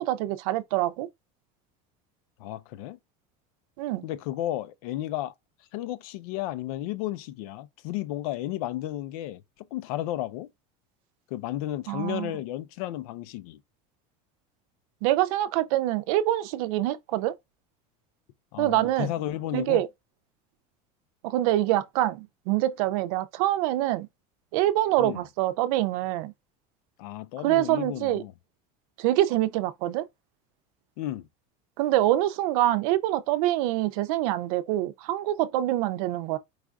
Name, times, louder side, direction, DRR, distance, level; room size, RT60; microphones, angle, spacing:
voice 1, 0.1-1.1 3.8-4.1 11.9-12.3 15.0-17.3 18.6-19.1 19.5-19.9 21.2-24.1 24.5-26.3 27.4-28.2 29.0-30.0 31.8-36.4, right 14 dB, 70° right, 0.6 m, -25 dB
voice 2, 2.4-3.0 4.0-5.3 5.7-9.4 9.7-10.5 11.3-13.6 18.5-19.8 25.0-25.2 27.0-28.3 31.0-31.3, left 14 dB, 70° left, 0.6 m, -33 dB
4.8 x 2.5 x 3.5 m
cardioid pair, 160°, 19 cm